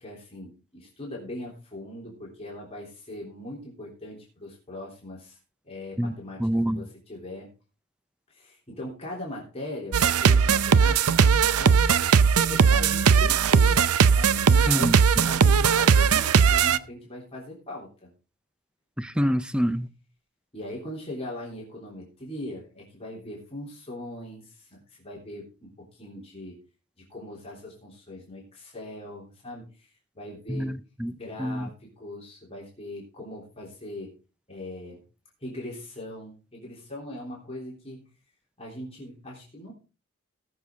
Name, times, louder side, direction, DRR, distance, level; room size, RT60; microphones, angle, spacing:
voice 1, 0.0-5.4 5.6-7.5 8.3-11.8 12.3-13.7 14.1-14.9 15.3-18.1 19.1-19.3 20.5-26.6 27.0-30.7 31.1-34.1 34.5-35.0 35.4-38.1 38.6-39.7, left 1 dB, 25° left, 3.4 m, -40 dB
voice 2, 6.4-6.8 14.7-15.3 19.0-19.9 30.5-31.1 31.4-31.7, equal, 5° right, 0.5 m, -26 dB
sound 1, 9.9-16.8, right 6 dB, 80° right, 0.5 m, -19 dB
18.5 x 6.8 x 3.7 m
head